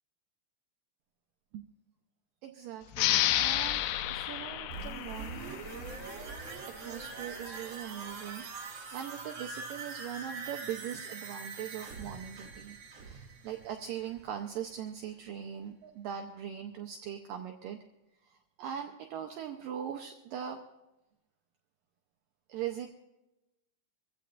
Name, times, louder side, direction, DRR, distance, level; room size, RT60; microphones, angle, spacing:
voice 1, 2.4-5.7 6.7-17.8 18.2-20.6 22.5-22.9, right 9 dB, 75° right, 4 dB, 2.1 m, -41 dB
sound 1, 2.9-6.2, left 13 dB, 90° left, 2.8 m, -31 dB
sound 2, 4.7-14.4 14.7-14.8, right 4 dB, 45° right, 2.8 m, -43 dB
24.0 x 15.5 x 2.6 m, 0.96 s
omnidirectional pair, 4.8 m